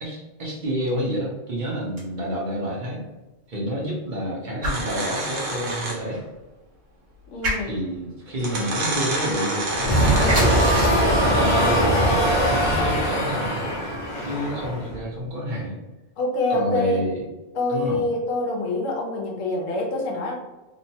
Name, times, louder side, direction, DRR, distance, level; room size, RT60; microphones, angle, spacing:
voice 1, 0.0-3.0 3.5-6.2 7.6-11.9 12.2-13.6 14.2-15.8 16.5-17.3 17.7-18.1, equal, 40° right, -4 dB, 0.8 m, -29 dB
sound 1, 1.8-13.9, right 1 dB, 60° right, 1.3 m, -36 dB
sound 2, 4.7-6.2 7.5-7.6 8.4-11.1, right 1 dB, 85° right, 1.1 m, -28 dB
voice 2, 7.3-7.8 16.2-17.0 17.5-20.4, left 2 dB, 75° left, -1 dB, 1.1 m, -26 dB
sound 3, 9.8-15.0, equal, 40° left, 0.8 m, -21 dB
2.9 x 2.1 x 2.7 m, 1.1 s
omnidirectional pair, 1.4 m